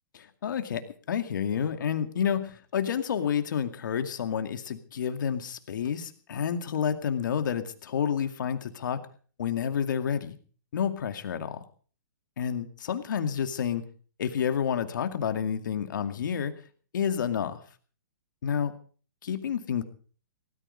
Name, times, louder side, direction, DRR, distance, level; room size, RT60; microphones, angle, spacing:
voice 1, 0.1-9.0 9.4-10.4 10.7-11.6 12.4-13.8 14.2-16.6 16.9-17.6 18.4-18.7 19.2-19.8, left 8 dB, 65° left, 8 dB, 2.3 m, -29 dB
19.0 x 13.5 x 5.2 m, 0.43 s
hypercardioid pair, 130°, 11 cm